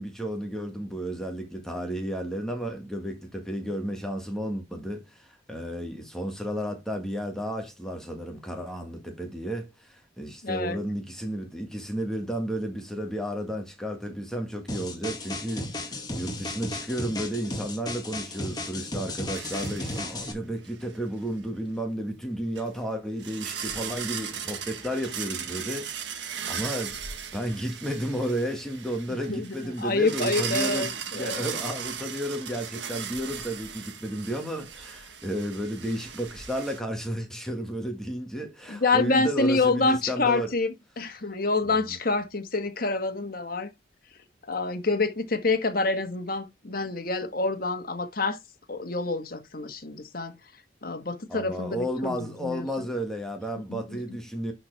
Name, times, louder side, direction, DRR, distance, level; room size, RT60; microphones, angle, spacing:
voice 1, 0.0-40.5 41.6-42.0 51.3-54.5, equal, 5° left, 1.7 m, -32 dB
voice 2, 10.4-10.8 29.3-31.5 38.7-43.7 44.5-48.4 48.7-50.4 50.8-52.9 53.7-54.0, left 3 dB, 50° left, 1.6 m, -27 dB
sound 1, 14.7-20.3, left 1 dB, 20° left, 1.9 m, -34 dB
sound 2, 19.3-20.3 20.7-20.8 22.5-22.6 23.2-36.8, right 7 dB, 75° right, 1.6 m, -37 dB
11.0 x 4.4 x 3.4 m
head